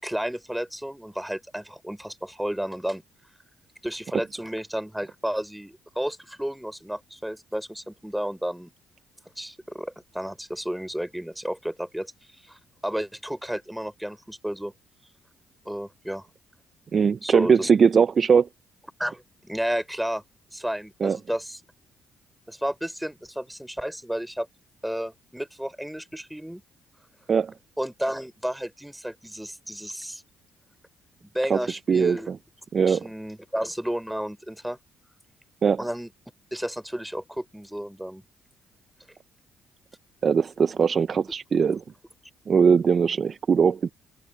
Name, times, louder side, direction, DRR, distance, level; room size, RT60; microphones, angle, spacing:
voice 1, 0.0-3.0 3.8-8.7 9.4-12.1 12.5-14.7 15.7-16.3 17.2-18.0 19.0-20.2 20.5-21.6 22.5-24.5 24.8-26.6 27.8-30.2 31.2-32.3 32.8-34.8 35.8-36.1 36.5-38.2, equal, 5° right, 5.6 m, -32 dB
voice 2, 16.9-18.5 21.0-21.2 27.3-27.5 31.5-31.6 31.9-32.2 32.7-33.0 35.6-35.8 40.2-41.8 42.5-43.9, right 6 dB, 50° right, 0.6 m, -20 dB
supercardioid pair, 60°, 0 cm